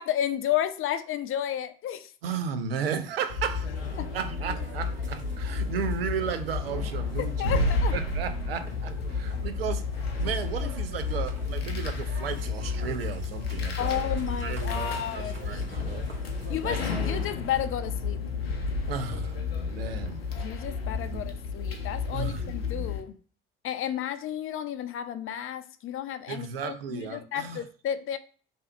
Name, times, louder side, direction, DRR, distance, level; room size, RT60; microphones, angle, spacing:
voice 1, 0.0-2.1 4.0-4.2 7.4-7.9 13.8-15.6 16.5-18.2 20.4-23.2 23.6-28.2, left 10 dB, 45° left, 0.6 m, -32 dB
voice 2, 2.2-3.8 4.1-7.6 7.9-16.1 16.6-16.8 18.9-20.3 21.1-21.3 22.1-22.5 26.3-27.6, right 7 dB, 85° right, 0.5 m, -34 dB
sound 1, 3.3-23.0, left 4 dB, 90° left, 0.6 m, -31 dB
sound 2, 3.5-17.3, right 3 dB, 40° right, 1.6 m, -47 dB
3.3 x 2.7 x 4.3 m
figure-of-eight pair, 50°, 29 cm